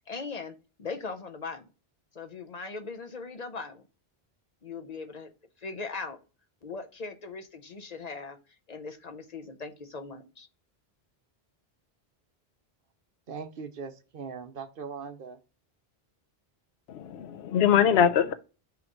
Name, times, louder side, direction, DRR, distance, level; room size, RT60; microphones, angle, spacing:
voice 1, 0.1-1.7 2.2-3.8 4.6-5.3 5.6-6.2 6.6-8.4 8.7-10.5, left 4 dB, 45° left, 0.7 m, -39 dB
voice 2, 13.3-15.4, right 5 dB, 60° right, 0.9 m, -40 dB
voice 3, 16.9-18.3, left 8 dB, 85° left, 0.8 m, -22 dB
6.1 x 3.0 x 5.1 m
omnidirectional pair, 1.0 m